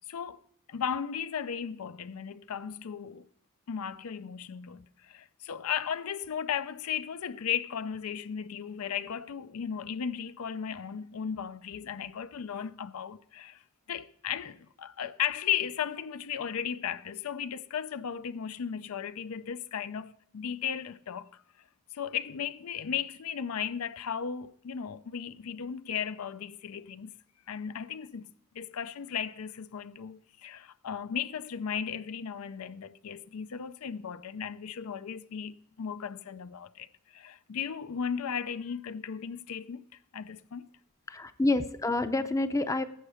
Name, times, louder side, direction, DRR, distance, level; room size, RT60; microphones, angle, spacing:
voice 1, 0.1-0.4 0.7-3.3 3.7-13.6 13.9-21.4 21.9-27.1 27.5-28.3 28.5-39.8 40.1-40.6, left 8 dB, 80° left, 0.5 m, -36 dB
voice 2, 41.1-42.8, left 2 dB, 15° left, 0.5 m, -28 dB
12.0 x 7.7 x 4.9 m
head